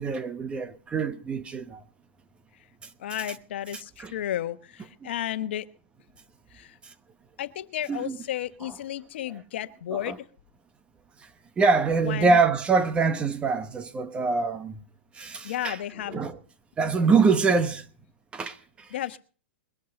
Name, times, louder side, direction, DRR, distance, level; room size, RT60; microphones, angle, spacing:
voice 1, 0.0-1.8 4.0-4.1 5.0-5.1 6.8-6.9 7.9-8.2 8.6-8.7 9.9-10.2 11.6-14.8 15.1-15.8 16.1-16.4 16.8-17.9 18.3-18.9, right 4 dB, 15° right, 1.1 m, -24 dB
voice 2, 3.0-5.7 6.5-6.8 7.4-10.2 12.0-12.4 15.4-16.2 18.9-19.2, left 12 dB, 65° left, 1.2 m, -33 dB
21.5 x 8.6 x 5.3 m
hypercardioid pair, 135°, 6 cm